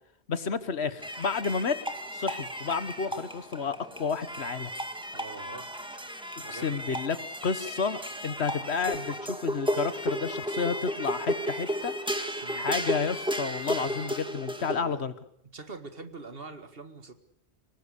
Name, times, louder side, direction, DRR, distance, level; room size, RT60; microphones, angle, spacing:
voice 1, 0.3-1.8 2.1-4.7 6.5-7.2 7.4-11.9 12.5-15.1, left 5 dB, 75° left, 13 dB, 1.5 m, -31 dB
sound 1, 1.0-14.8, equal, 5° right, 1.8 m, -34 dB
voice 2, 5.1-5.7 6.4-7.0 12.4-12.7 14.7-15.0 15.5-17.1, right 3 dB, 60° right, 9 dB, 2.1 m, -43 dB
25.0 x 19.5 x 8.3 m, 0.69 s
omnidirectional pair, 1.1 m